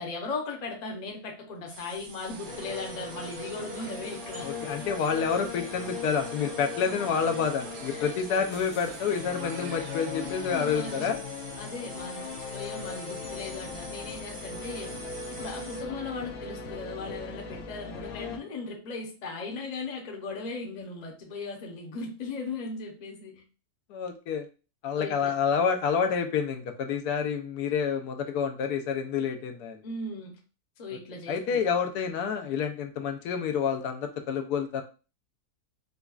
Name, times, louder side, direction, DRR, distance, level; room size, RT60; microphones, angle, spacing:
voice 1, 0.0-4.5 7.9-8.1 10.2-11.1 11.6-14.9 15.3-23.4 24.9-25.3 29.8-30.4 30.8-31.6, left 3 dB, 40° left, 0 dB, 0.7 m, -38 dB
sound 1, 1.7-15.8, right 4 dB, 60° right, 0.6 m, -47 dB
sound 2, 2.2-11.1, right 6 dB, 75° right, 1.0 m, -46 dB
sound 3, 2.5-18.4, left 5 dB, 65° left, 0.9 m, -39 dB
voice 2, 4.4-11.2 23.9-24.4 24.8-29.8 31.3-34.8, left 6 dB, 85° left, 5 dB, 1.1 m, -28 dB
5.1 x 2.3 x 2.3 m, 0.33 s
omnidirectional pair, 1.6 m